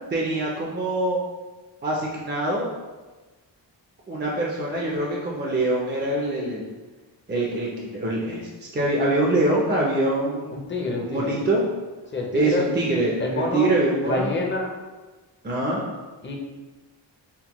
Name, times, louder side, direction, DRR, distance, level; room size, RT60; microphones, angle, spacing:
voice 1, 0.1-1.2 1.8-2.7 4.1-6.7 7.3-10.7 11.0-11.6 12.3-14.3 15.4-15.8, right 1 dB, 25° right, -3 dB, 0.4 m, -24 dB
voice 2, 10.5-11.4 12.1-12.7 13.2-13.7 14.0-14.8 16.2-16.4, left 2 dB, 25° left, 0 dB, 0.5 m, -27 dB
5.7 x 2.1 x 2.9 m, 1.2 s
wide cardioid pair, 165°, 45 cm